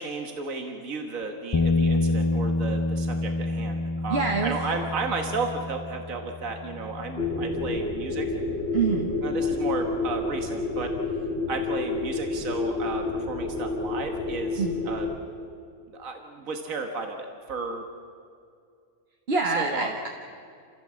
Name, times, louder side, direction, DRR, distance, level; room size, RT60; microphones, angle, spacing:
voice 1, 0.0-8.3 9.2-15.1 15.9-17.8 19.6-19.9, right 4 dB, 80° right, 4 dB, 1.9 m, -33 dB
Bass guitar, 1.5-7.8, left 2 dB, 30° left, 0.4 m, -28 dB
voice 2, 4.1-4.6 8.7-9.1 14.6-14.8 19.3-20.1, right 4 dB, 50° right, 3 dB, 1.4 m, -25 dB
sound 1, 7.2-15.2, left 3 dB, 55° left, 3.0 m, -29 dB
28.0 x 16.5 x 7.5 m, 2.3 s
omnidirectional pair, 1.4 m